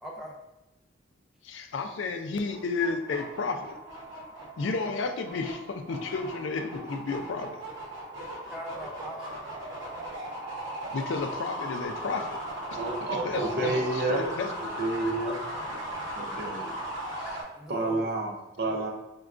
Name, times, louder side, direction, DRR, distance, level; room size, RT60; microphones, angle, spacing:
voice 1, 0.0-0.4 8.5-9.4 13.3-13.8 17.5-18.2 18.6-18.9, equal, ahead, -2 dB, 0.4 m, -40 dB
voice 2, 1.4-3.8 4.6-7.6 10.9-12.4 13.2-14.5, left 4 dB, 70° left, 6 dB, 0.4 m, -32 dB
sound 1, 2.5-17.4, right 1 dB, 75° right, 0.9 m, -38 dB
voice 3, 12.7-14.2 14.6-15.4 16.1-16.7 17.2-17.3 17.7-18.9, right 2 dB, 55° right, 1 dB, 0.5 m, -30 dB
4.7 x 2.2 x 2.4 m, 0.98 s
head